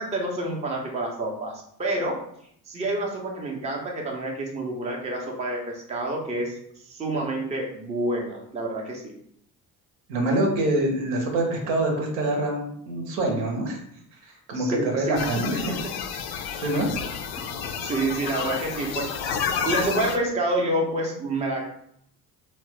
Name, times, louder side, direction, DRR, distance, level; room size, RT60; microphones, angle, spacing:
voice 1, 0.0-2.2 2.7-6.6 6.8-9.1 14.5-15.9 17.7-21.7, right 1 dB, 15° right, 0 dB, 0.6 m, -28 dB
voice 2, 10.1-13.8 14.2-15.6 16.3-16.9, right 1 dB, 65° right, 1 dB, 0.8 m, -25 dB
sound 1, 15.1-20.2, left 7 dB, 50° left, 0.5 m, -30 dB
2.9 x 2.0 x 3.2 m, 0.69 s
figure-of-eight pair, 50°, 50 cm